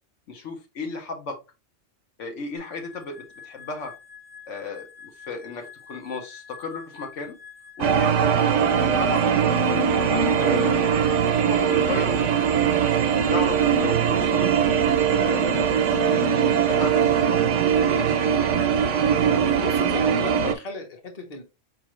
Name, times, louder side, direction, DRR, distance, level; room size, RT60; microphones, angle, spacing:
voice 1, 0.3-1.4 2.2-3.9 4.5-7.3 7.8-9.2 9.7-12.4 12.8-14.5 15.1-17.4 17.7-18.5, left 4 dB, 80° left, 3 dB, 1.3 m, -34 dB
sound 1, 2.6-19.9, left 7 dB, 15° right, 0.6 m, -46 dB
sound 2, 7.8-20.5, right 7 dB, 90° right, 1.0 m, -21 dB
voice 2, 19.6-21.4, left 4 dB, 35° left, 2 dB, 1.1 m, -35 dB
4.9 x 3.0 x 3.0 m, 0.27 s
omnidirectional pair, 1.2 m